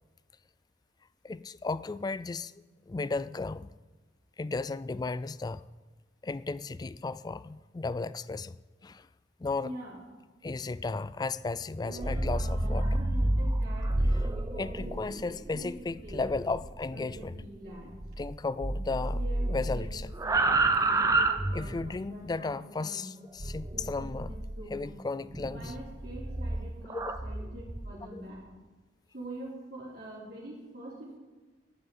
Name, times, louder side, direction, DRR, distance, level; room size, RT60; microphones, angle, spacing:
voice 1, 1.2-3.7 4.4-5.6 6.2-8.6 8.8-9.1 9.4-9.7 10.4-12.9 14.6-17.3 18.2-19.2 19.5-20.1 21.5-24.3 24.7-25.7 26.9-27.1 28.1-28.2, left 3 dB, 20° left, 0.3 m, -35 dB
voice 2, 9.6-10.0 11.8-16.3 16.9-18.0 18.9-23.1 23.7-25.0 25.5-28.5 29.1-31.2, right 1 dB, 60° right, 3.4 m, -45 dB
sound 1, 11.9-18.3 18.6-22.0 23.4-24.7 25.3-27.9, right 2 dB, 20° right, 0.7 m, -30 dB
11.0 x 8.9 x 8.4 m
head